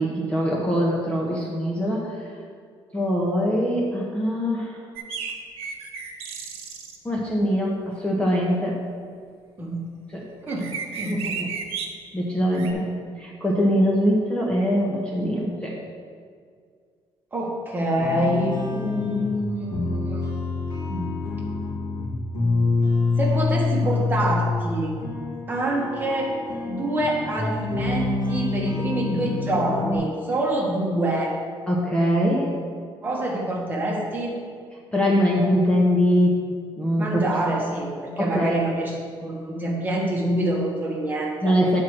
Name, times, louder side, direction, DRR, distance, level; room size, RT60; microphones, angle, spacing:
voice 1, 0.0-2.3 2.9-4.8 7.0-8.8 10.1-10.3 11.1-11.5 12.1-15.8 31.7-32.5 34.9-37.2 38.2-38.6 41.4-41.8, equal, 10° left, -4 dB, 0.9 m, -23 dB
sound 1, 5.0-7.0 10.5-11.9 12.5-12.7, right 6 dB, 90° right, 1.1 m, -33 dB
voice 2, 17.3-20.3 20.9-21.1 23.2-24.9 25.5-26.3 26.7-31.3 33.0-34.3 37.0-41.6, right 1 dB, 20° right, -3 dB, 1.3 m, -26 dB
sound 2, 18.0-30.0, left 3 dB, 45° left, 2.2 m, -26 dB
9.0 x 4.5 x 6.4 m, 2.1 s
cardioid pair, 175°, 10 cm